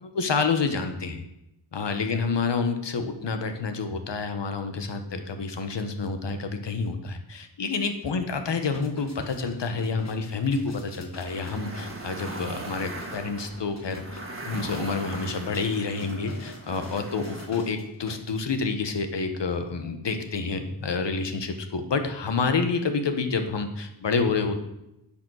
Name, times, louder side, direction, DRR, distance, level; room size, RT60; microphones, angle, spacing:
voice 1, 0.0-1.2 1.7-14.2 14.4-24.6, left 4 dB, 70° left, 7 dB, 1.4 m, -28 dB
sound 1, 8.5-18.4 18.9-19.0, left 3 dB, 35° left, 1.3 m, -47 dB
sound 2, 11.2-17.5, right 2 dB, 30° right, 1.7 m, -39 dB
10.5 x 7.0 x 6.4 m, 0.87 s
wide cardioid pair, 130°, 44 cm